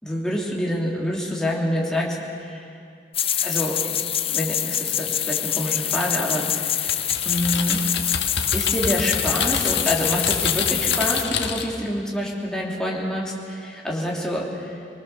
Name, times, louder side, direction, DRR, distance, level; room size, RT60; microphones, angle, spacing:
voice 1, 0.0-2.7 3.4-3.8 4.3-7.8 8.5-14.8, equal, 5° left, -3 dB, 2.9 m, -27 dB
sound 1, 3.1-11.2, left 10 dB, 35° left, 0.5 m, -25 dB
Typing, 6.9-11.8, left 6 dB, 85° left, 1.6 m, -28 dB
23.5 x 20.0 x 6.8 m, 2.4 s
head